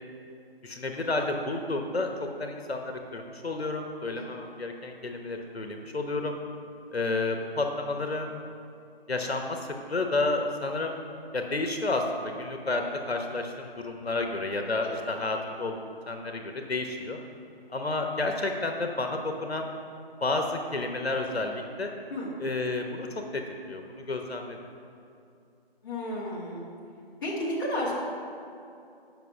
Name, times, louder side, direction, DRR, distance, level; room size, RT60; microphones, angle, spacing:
voice 1, 0.6-6.4 6.9-8.3 9.1-9.6 9.9-11.0 11.3-15.8 16.1-17.2 17.7-19.7 20.2-21.9 22.4-23.1 23.3-23.8 24.1-24.6, left 2 dB, 80° left, 4 dB, 1.1 m, -31 dB
voice 2, 25.8-26.7 27.2-27.9, left 1 dB, 20° left, -7 dB, 1.9 m, -32 dB
9.3 x 6.0 x 5.8 m, 2.6 s
figure-of-eight pair, 165°, 31 cm